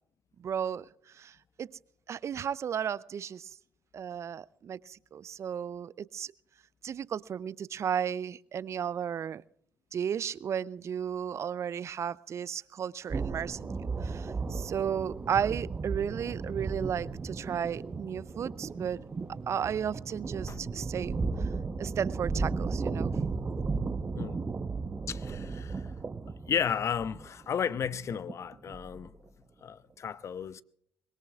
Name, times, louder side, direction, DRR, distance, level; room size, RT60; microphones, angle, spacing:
voice 1, 0.4-0.9 1.2-1.8 2.1-3.5 3.9-6.3 6.8-9.4 9.9-19.0 19.5-21.2 21.8-23.2, right 8 dB, 45° right, 0.5 m, -34 dB
sound 1, 13.1-29.3, right 4 dB, 30° right, 1.1 m, -35 dB
sound 2, 13.5-20.9, right 6 dB, 80° right, 1.7 m, -56 dB
voice 2, 25.1-25.9 26.5-29.1 29.6-30.6, left 7 dB, 45° left, 0.7 m, -33 dB
24.0 x 22.0 x 2.4 m
hypercardioid pair, 50°, 7 cm